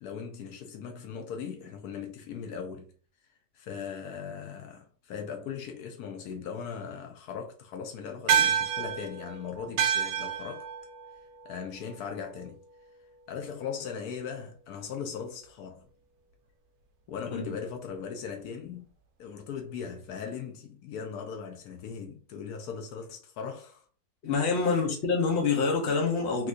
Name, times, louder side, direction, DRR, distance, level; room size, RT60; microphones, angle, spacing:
voice 1, 0.0-2.9 3.5-10.7 11.4-12.6 13.3-15.9 17.1-18.9 19.2-23.9 24.5-24.9, left 6 dB, 80° left, 1.1 m, -39 dB
sound 1, 8.3-13.0, right 8 dB, 70° right, 1.0 m, -30 dB
voice 2, 24.2-26.5, left 4 dB, 50° left, 1.0 m, -26 dB
3.6 x 2.9 x 2.5 m
omnidirectional pair, 1.6 m